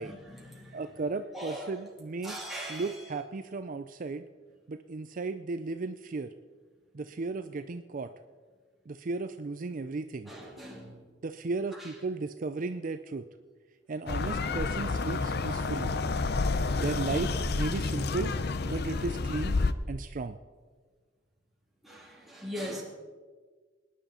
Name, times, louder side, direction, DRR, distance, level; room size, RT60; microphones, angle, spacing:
voice 1, 0.0-1.0 1.3-1.8 2.2-3.1 10.2-11.1 11.7-12.0 21.8-22.8, equal, ahead, -5 dB, 3.3 m, -41 dB
voice 2, 0.7-2.4 2.7-4.3 4.7-6.3 6.9-8.1 8.9-10.3 11.2-13.3 13.9-16.0 16.7-18.3 18.6-19.6 19.9-20.4, right 3 dB, 45° right, 9 dB, 0.5 m, -35 dB
sound 1, 14.1-19.7, left 3 dB, 60° left, 0.6 m, -30 dB
19.5 x 10.5 x 4.3 m, 1.5 s
head